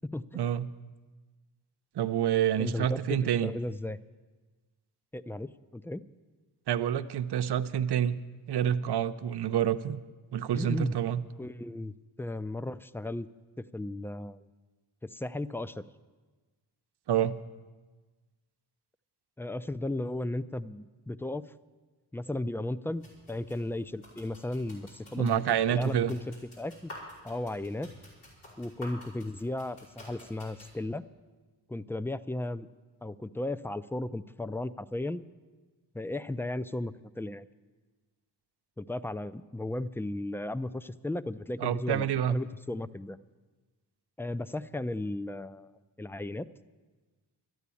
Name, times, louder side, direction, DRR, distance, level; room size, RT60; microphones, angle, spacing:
voice 1, 0.3-0.7 1.9-3.5 6.7-8.2 8.5-10.0 10.3-11.2 17.1-17.4 25.2-26.1 41.6-42.4, right 10 dB, 55° right, 11 dB, 0.8 m, -28 dB
voice 2, 2.6-4.0 5.1-6.0 10.5-10.9 11.4-13.3 13.6-14.4 15.0-15.8 19.4-21.4 22.1-25.4 25.7-26.9 27.2-27.9 28.6-31.0 31.7-32.7 33.0-35.2 35.9-37.5 38.8-43.2 44.2-45.7 46.0-46.5, left 1 dB, 5° left, 16 dB, 0.4 m, -35 dB
sound 1, 22.9-30.7, left 1 dB, 80° left, 5.6 m, -51 dB
12.5 x 9.3 x 8.4 m, 1.3 s
supercardioid pair, 50°, 48 cm